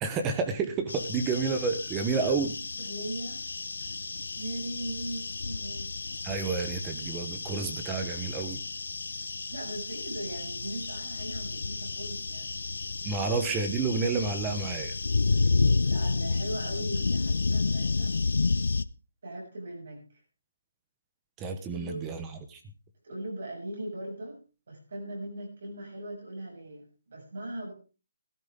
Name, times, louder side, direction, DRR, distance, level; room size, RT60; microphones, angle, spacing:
voice 1, 0.0-2.5 6.2-8.6 13.0-14.9 21.4-22.6, right 4 dB, 10° right, 7 dB, 1.0 m, -30 dB
sound 1, 0.9-18.8, left 3 dB, 80° left, 0.6 m, -31 dB
voice 2, 2.8-3.4 4.4-5.9 9.5-12.6 15.8-18.2 19.2-20.0 21.7-22.0 23.0-24.4 24.7-27.7, right 1 dB, 50° right, 0 dB, 7.0 m, -39 dB
15.5 x 13.0 x 3.7 m, 0.33 s
hypercardioid pair, 175°, 0 cm